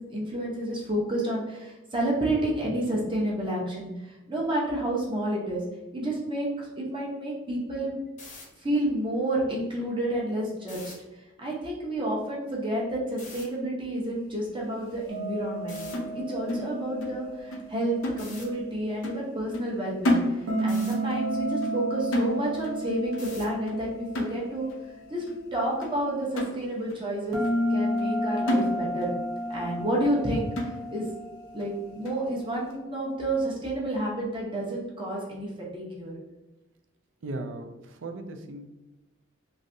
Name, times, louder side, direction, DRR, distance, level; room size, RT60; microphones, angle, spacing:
voice 1, 0.0-5.6 5.9-8.0 8.6-10.8 11.4-15.8 16.1-20.2 20.6-24.7 25.1-25.2 25.5-27.4 27.7-29.1 29.5-31.1 31.5-36.1, right 1 dB, 25° right, -4 dB, 0.7 m, -30 dB
sound 1, 8.1-8.4 10.6-10.9 13.2-13.4 15.7-15.9 18.2-18.4 20.7-21.0 23.2-23.6, left 3 dB, 40° left, 0.7 m, -44 dB
sound 2, 15.1-18.1 20.5-25.0 27.3-31.9, right 1 dB, 85° right, 0.9 m, -32 dB
sound 3, 15.9-17.2 17.5-17.7 18.0-18.7 19.0-19.3 19.5-20.8 21.1-21.3 21.6-21.9 22.1-22.8 23.1-23.4 23.7-23.9 24.2-24.8 25.3-25.4 25.8-26.0 26.4-27.0 27.4-27.6 28.0-28.2 28.5-29.2 29.5-29.6 30.0-30.2 30.6-31.1 31.6-31.7 32.1-32.3, left 1 dB, 85° left, 0.6 m, -31 dB
voice 2, 37.2-38.7, right 2 dB, 65° right, 5 dB, 0.4 m, -37 dB
3.2 x 2.6 x 2.6 m, 1.1 s
head